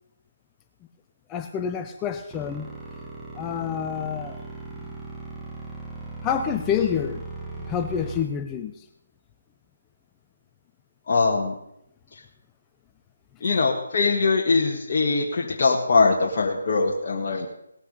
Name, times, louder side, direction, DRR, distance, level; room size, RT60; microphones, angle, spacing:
voice 1, 1.3-2.7 3.3-4.4 4.8-4.9 6.2-7.2 7.6-8.9, left 8 dB, 15° left, 7 dB, 0.6 m, -28 dB
sound 1, 2.3-8.2, right 3 dB, 10° right, 1.7 m, -38 dB
voice 2, 11.1-11.5 12.1-12.2 13.4-17.5, left 4 dB, 40° left, -2 dB, 1.7 m, -22 dB
18.5 x 8.3 x 5.4 m, 0.79 s
figure-of-eight pair, 160°, 0 cm